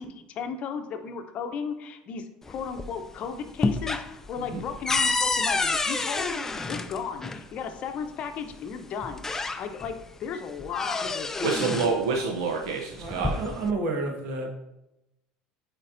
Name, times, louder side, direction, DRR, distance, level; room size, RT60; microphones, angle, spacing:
voice 1, 0.0-9.2 9.6-11.5 14.4-14.5, left 6 dB, 45° left, 7 dB, 0.7 m, -35 dB
sound 1, 2.5-3.1 3.4-7.4 8.5-8.6 9.0-10.0 10.3-12.0 12.9-13.7, left 3 dB, 15° left, 0.4 m, -29 dB
voice 2, 11.4-13.4, right 4 dB, 90° right, 1 dB, 0.6 m, -27 dB
voice 3, 13.0-14.5, right 3 dB, 60° right, 2 dB, 1.4 m, -30 dB
8.5 x 4.5 x 2.6 m, 0.90 s
supercardioid pair, 115°, 3 cm